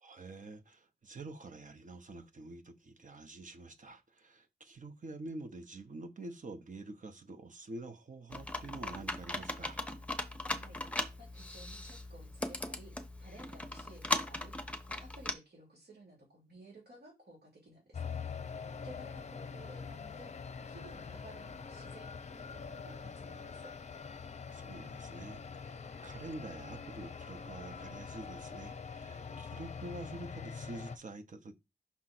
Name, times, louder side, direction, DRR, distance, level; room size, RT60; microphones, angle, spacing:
voice 1, 0.0-9.8 24.5-31.5, right 2 dB, 50° right, 1.0 m, -47 dB
Computer keyboard, 8.3-15.3, left 2 dB, 10° left, 0.9 m, -38 dB
voice 2, 10.5-12.9 13.2-18.4 18.8-23.7, right 1 dB, 80° right, 2.8 m, -55 dB
sound 1, 17.9-31.0, left 5 dB, 45° left, 0.6 m, -44 dB
5.9 x 3.7 x 6.0 m
wide cardioid pair, 110°, 16 cm